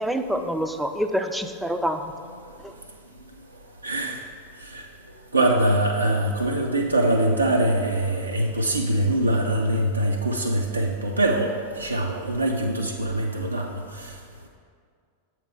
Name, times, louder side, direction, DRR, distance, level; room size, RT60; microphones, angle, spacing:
voice 1, 0.0-2.1 2.6-2.7, equal, ahead, 7 dB, 0.3 m, -26 dB
voice 2, 3.8-4.2 4.6-4.8 5.3-14.1, right 1 dB, 80° right, 0 dB, 0.4 m, -23 dB
7.0 x 4.4 x 3.6 m, 2.2 s
figure-of-eight pair, 90°, 0 cm